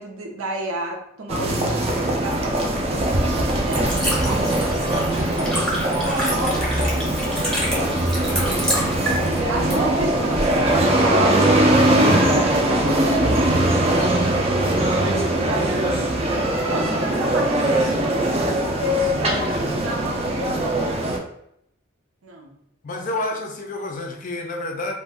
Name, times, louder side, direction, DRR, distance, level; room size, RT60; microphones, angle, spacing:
voice 1, 0.0-5.3 6.3-7.2 9.5-14.2 14.6-14.8 15.3-15.9 16.7-20.7 22.2-22.5, equal, 85° right, 1 dB, 0.6 m, -31 dB
sound 1, 1.3-21.2, right 1 dB, 30° right, 0.4 m, -21 dB
Liquid, 2.2-10.8, equal, 5° left, 0.7 m, -29 dB
voice 2, 22.8-24.9, left 2 dB, 40° left, 3 dB, 0.4 m, -29 dB
2.5 x 2.1 x 3.3 m, 0.76 s
head